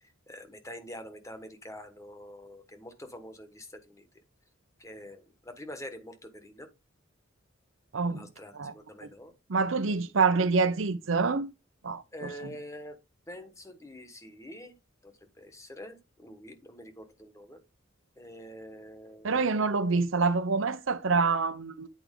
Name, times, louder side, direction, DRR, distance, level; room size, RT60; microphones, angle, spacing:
voice 1, 0.0-4.1 4.8-6.7 8.1-9.3 12.1-13.0 13.3-14.8 15.0-17.6 18.2-19.4, equal, 15° left, 1.2 m, -46 dB
voice 2, 7.9-8.3 8.5-8.7 9.5-11.5 11.8-12.3 19.2-21.9, right 4 dB, 75° right, 0.7 m, -26 dB
8.6 x 4.7 x 3.7 m
head